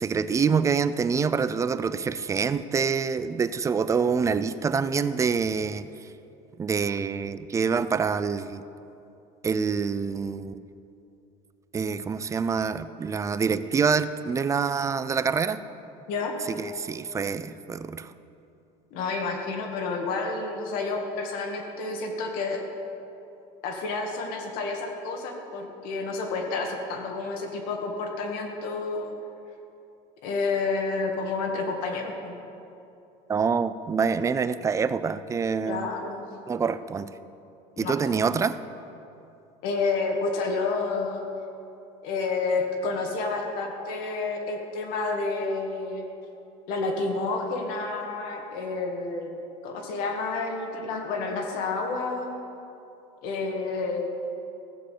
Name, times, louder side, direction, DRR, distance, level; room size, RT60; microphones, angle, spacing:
voice 1, 0.0-5.9 6.6-8.6 9.4-10.5 11.7-15.6 16.5-18.1 33.3-35.9 36.5-37.1 37.8-38.6, right 5 dB, 20° right, 13 dB, 0.4 m, -26 dB
voice 2, 18.9-22.6 23.6-29.1 30.2-32.4 35.7-36.3 37.8-38.0 39.6-41.2 42.0-46.0 46.7-49.4 49.6-52.3 53.2-54.1, left 3 dB, 75° left, 2 dB, 2.1 m, -30 dB
15.5 x 7.6 x 6.7 m, 2.8 s
cardioid pair, 135°, 15 cm